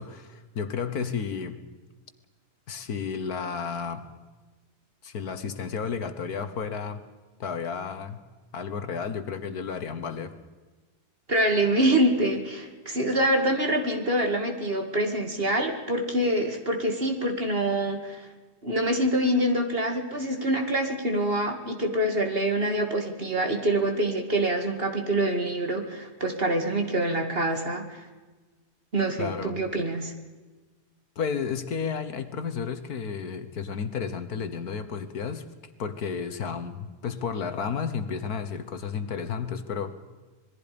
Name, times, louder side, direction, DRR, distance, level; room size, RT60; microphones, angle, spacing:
voice 1, 0.0-1.6 2.7-4.0 5.0-7.0 7.4-8.2 8.5-10.3 29.2-29.6 31.2-35.4 35.8-39.9, left 6 dB, 65° left, 10 dB, 1.7 m, -32 dB
voice 2, 11.3-18.3 18.6-28.0 28.9-30.1, right 1 dB, 35° right, 4 dB, 2.5 m, -25 dB
26.5 x 21.0 x 5.2 m, 1.3 s
omnidirectional pair, 1.7 m